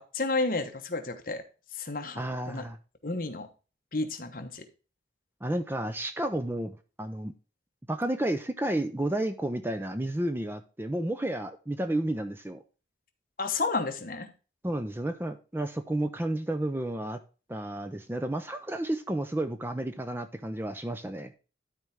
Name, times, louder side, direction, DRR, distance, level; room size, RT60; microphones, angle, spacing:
voice 1, 0.0-1.4 1.8-2.2 2.5-2.6 3.0-3.5 3.9-4.6 13.4-14.3, left 3 dB, 50° left, 6 dB, 1.1 m, -31 dB
voice 2, 2.2-2.8 5.4-7.3 7.9-12.6 14.6-17.2 17.5-21.3, right 1 dB, 10° right, 9 dB, 0.5 m, -31 dB
12.5 x 4.4 x 3.5 m, 0.34 s
head